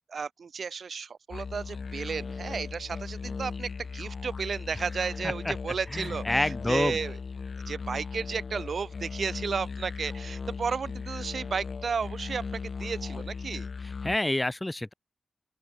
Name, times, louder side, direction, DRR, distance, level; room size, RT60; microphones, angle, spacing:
voice 1, 0.1-6.2 6.7-7.2 7.7-13.7, right 5 dB, 70° right, 1.1 m, -33 dB
sound 1, 1.3-14.2, left 4 dB, 60° left, 1.9 m, -37 dB
voice 2, 5.2-5.6 5.9-7.0 13.8-14.9, left 1 dB, 15° left, 0.5 m, -28 dB
open air
wide cardioid pair, 85°, 0 cm